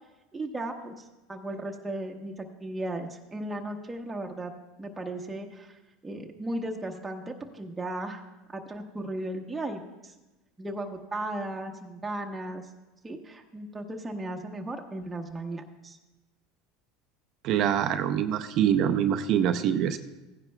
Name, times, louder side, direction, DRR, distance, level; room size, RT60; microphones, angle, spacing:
voice 1, 0.3-4.5 4.8-8.2 8.5-10.1 10.6-12.6 13.0-16.0, right 1 dB, 15° right, 1 dB, 0.9 m, -36 dB
voice 2, 17.4-20.0, right 9 dB, 55° right, 8 dB, 0.5 m, -25 dB
15.5 x 9.8 x 2.2 m, 1.1 s
supercardioid pair, 95°, 0 cm